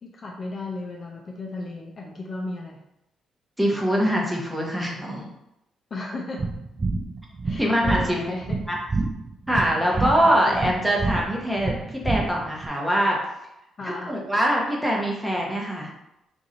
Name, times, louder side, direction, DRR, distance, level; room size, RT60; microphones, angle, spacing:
voice 1, 0.0-2.8 5.9-6.4 7.4-8.6 9.8-10.1 10.5-10.7 13.8-14.2, left 2 dB, 40° left, -1 dB, 0.6 m, -35 dB
voice 2, 3.6-5.3 7.6-8.2 8.7-8.8 9.5-11.7 12.0-13.2 13.8-15.9, equal, 5° right, -2 dB, 0.9 m, -23 dB
sound 1, 6.4-12.7, right 3 dB, 30° right, 0.4 m, -28 dB
2.9 x 2.6 x 3.8 m, 0.87 s
cardioid pair, 90°, 0 cm